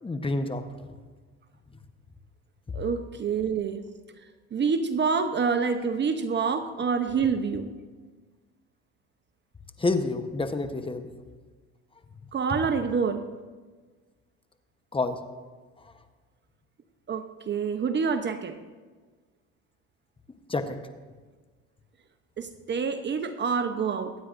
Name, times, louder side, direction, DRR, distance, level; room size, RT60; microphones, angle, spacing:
voice 1, 0.0-0.6 9.8-11.1 14.9-15.2 20.5-20.8, left 3 dB, 15° left, 7 dB, 1.0 m, -28 dB
voice 2, 2.7-3.9 4.5-7.7 12.3-13.2 17.1-18.6 22.4-24.2, right 5 dB, 35° right, 9 dB, 0.8 m, -27 dB
23.5 x 9.4 x 2.6 m, 1.4 s
supercardioid pair, 90°, 32 cm